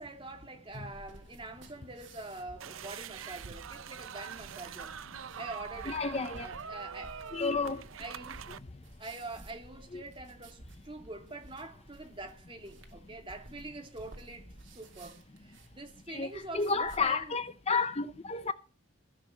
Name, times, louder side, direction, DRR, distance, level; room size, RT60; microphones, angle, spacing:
voice 1, 0.0-4.9 5.4-6.0 6.4-7.2 8.0-8.4 9.0-17.3, right 2 dB, 25° right, 2.6 m, -45 dB
sound 1, 0.7-17.0, right 1 dB, 60° right, 2.9 m, -55 dB
sound 2, 2.6-8.6, right 7 dB, 75° right, 0.6 m, -44 dB
voice 2, 5.9-6.5 7.3-7.8 9.9-10.0 16.1-18.5, left 4 dB, 30° left, 0.7 m, -31 dB
15.5 x 6.8 x 7.1 m
head